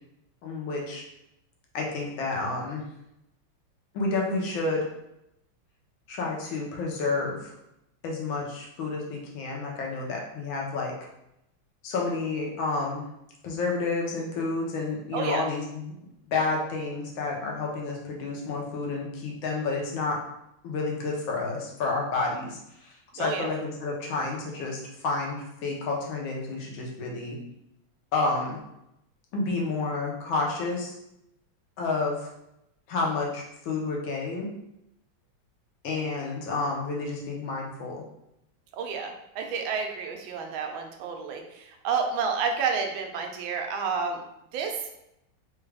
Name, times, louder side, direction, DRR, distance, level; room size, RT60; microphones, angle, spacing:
voice 1, 0.4-1.0 1.7-2.8 3.9-4.9 6.1-7.5 8.0-10.9 11.8-13.0 13.4-15.9 16.3-20.2 20.6-27.4 28.1-28.6 29.3-30.9 31.8-32.3 32.9-34.5 35.8-38.0, left 3 dB, 80° left, -1 dB, 1.6 m, -30 dB
voice 2, 15.1-15.4 23.2-23.5 38.7-44.2 44.5-44.8, right 5 dB, 90° right, 3 dB, 1.4 m, -30 dB
4.0 x 2.3 x 3.3 m, 0.83 s
omnidirectional pair, 2.1 m